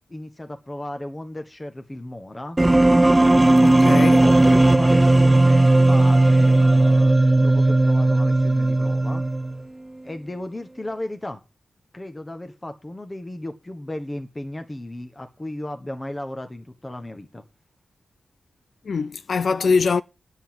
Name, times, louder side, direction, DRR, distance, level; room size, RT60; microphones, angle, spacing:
voice 1, 0.1-2.6 4.2-9.2 10.0-11.4 11.9-17.4, left 1 dB, 20° left, 1.4 m, -35 dB
sound 1, 2.6-9.6, right 2 dB, 15° right, 0.8 m, -16 dB
voice 2, 3.6-4.2 18.8-20.0, left 5 dB, 60° left, 0.5 m, -22 dB
9.7 x 7.9 x 7.7 m
wide cardioid pair, 130°, 0 cm